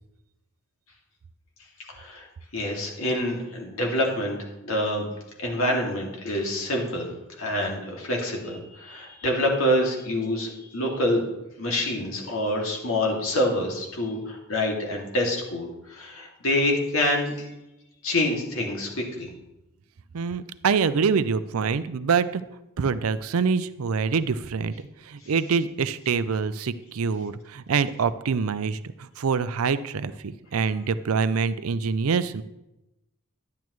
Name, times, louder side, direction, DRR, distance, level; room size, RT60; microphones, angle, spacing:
voice 1, 1.9-2.3 2.5-4.4 4.6-5.1 5.4-7.1 7.4-11.3 11.6-17.5 18.0-19.3, left 1 dB, 75° left, 0 dB, 2.3 m, -26 dB
voice 2, 20.1-22.4 22.8-24.7 25.0-32.4, right 5 dB, 90° right, 14 dB, 0.5 m, -25 dB
10.5 x 10.5 x 3.1 m, 0.93 s
head